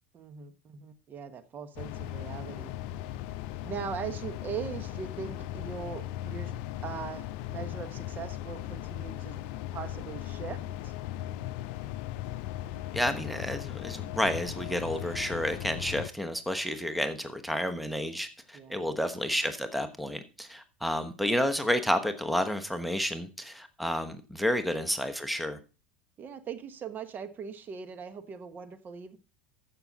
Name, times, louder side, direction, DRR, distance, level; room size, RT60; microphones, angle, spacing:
voice 1, 0.1-2.7 3.6-6.5 6.8-9.4 9.7-10.6 10.8-10.9 18.5-18.9 26.2-29.2, right 7 dB, 35° right, 1.2 m, -40 dB
sound 1, 1.8-16.1, left 13 dB, 60° left, 0.6 m, -38 dB
voice 2, 12.9-25.6, equal, ahead, 1.1 m, -30 dB
14.5 x 5.9 x 4.1 m
hypercardioid pair, 80°, 5 cm